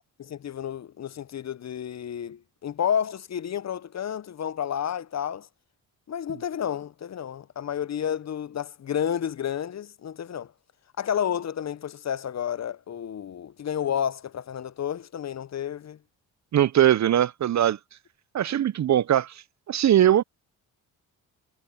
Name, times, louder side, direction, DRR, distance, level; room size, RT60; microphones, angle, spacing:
voice 1, 0.2-5.5 6.1-10.5 11.0-16.0, left 9 dB, 45° left, 0.7 m, -31 dB
voice 2, 16.5-17.8 18.3-19.3 19.7-20.2, right 11 dB, 50° right, 0.6 m, -20 dB
supercardioid pair, 55°, 37 cm